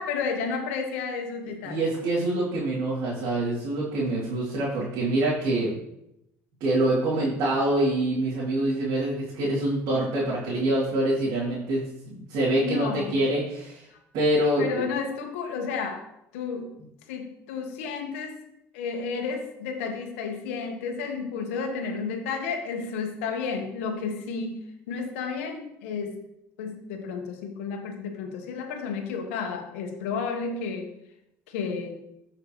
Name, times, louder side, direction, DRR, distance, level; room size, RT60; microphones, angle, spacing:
voice 1, 0.0-1.8 12.5-13.1 13.9-14.0 14.6-16.1 16.3-16.7 17.1-18.4 18.7-26.2 26.6-30.9 31.5-32.0, left 5 dB, 85° left, 5 dB, 1.3 m, -32 dB
voice 2, 1.6-5.8 6.6-11.8 12.1-13.8 14.1-14.8, right 1 dB, 70° right, -7 dB, 2.8 m, -25 dB
14.0 x 5.7 x 3.1 m, 0.82 s
supercardioid pair, 75°, 7 cm